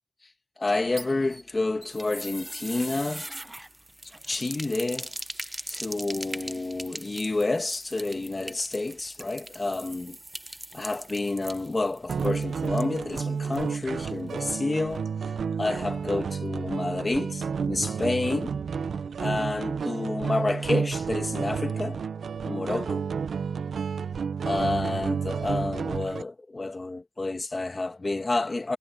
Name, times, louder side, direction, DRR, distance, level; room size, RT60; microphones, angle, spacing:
voice 1, 0.6-3.3 4.3-5.1 5.7-10.2 10.7-15.3 15.6-18.6 19.2-22.0 22.4-23.1 24.4-28.8, left 2 dB, 25° left, 1.9 m, -29 dB
sound 1, 0.7-13.7 14.0-14.1 14.4-14.5, right 1 dB, 10° right, 1.1 m, -41 dB
sound 2, 12.1-26.2, right 6 dB, 85° right, 0.8 m, -31 dB
wide cardioid pair, 155°, 0 cm